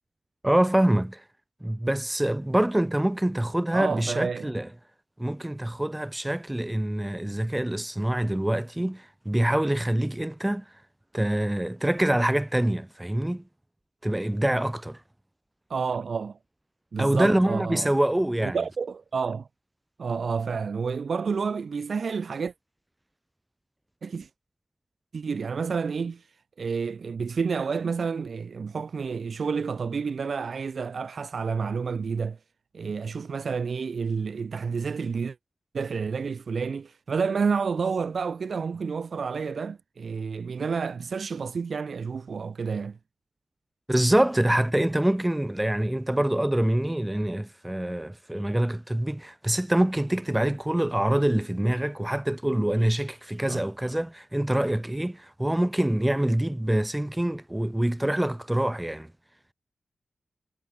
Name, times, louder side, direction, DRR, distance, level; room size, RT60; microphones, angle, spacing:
voice 1, 0.4-1.2 1.6-4.7 5.2-10.6 11.1-13.4 14.0-15.0 17.0-18.6 43.9-59.1, right 1 dB, 10° right, 4.6 m, -25 dB
voice 2, 3.7-4.5 15.7-16.4 16.9-17.9 18.4-19.5 20.0-22.5 24.0-24.3 25.1-26.2 26.6-32.4 32.7-35.4 35.7-43.0 53.5-53.6, right 5 dB, 65° right, 4.4 m, -29 dB
cardioid pair, 65°, 0 cm